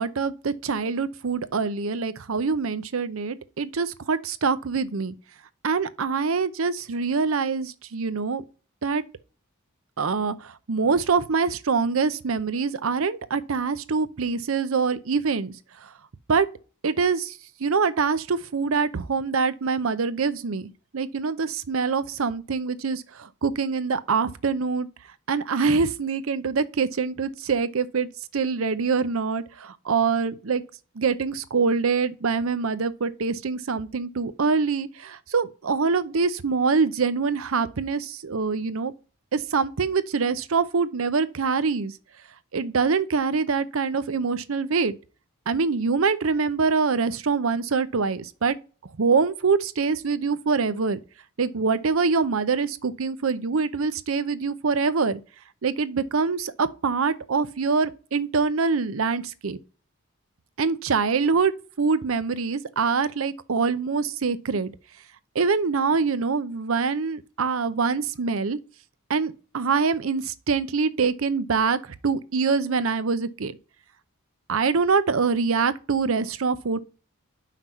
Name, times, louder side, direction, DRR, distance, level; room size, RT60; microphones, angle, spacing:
voice 1, 0.0-5.1 5.6-8.4 8.8-9.0 10.0-15.5 16.3-16.5 16.8-24.9 25.3-28.1 28.3-30.6 31.0-38.9 39.3-41.9 42.5-45.0 45.5-48.6 49.0-51.0 51.4-55.2 55.6-59.6 60.6-61.5 61.8-64.7 65.3-68.6 69.1-73.5 74.5-76.8, right 5 dB, 70° right, 0.6 m, -24 dB
5.8 x 4.5 x 5.5 m
head